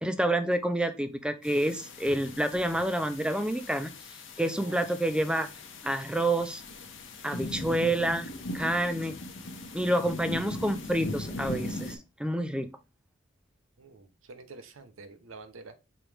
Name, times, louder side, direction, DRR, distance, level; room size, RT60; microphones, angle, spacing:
voice 1, 0.0-3.9 4.4-5.5 5.8-6.6 7.2-9.2 9.7-12.7, right 1 dB, 5° right, 0.4 m, -28 dB
sound 1, 1.4-12.0, left 1 dB, 65° left, 0.8 m, -40 dB
voice 2, 13.8-15.7, right 3 dB, 85° right, 0.7 m, -47 dB
5.4 x 3.0 x 3.3 m
head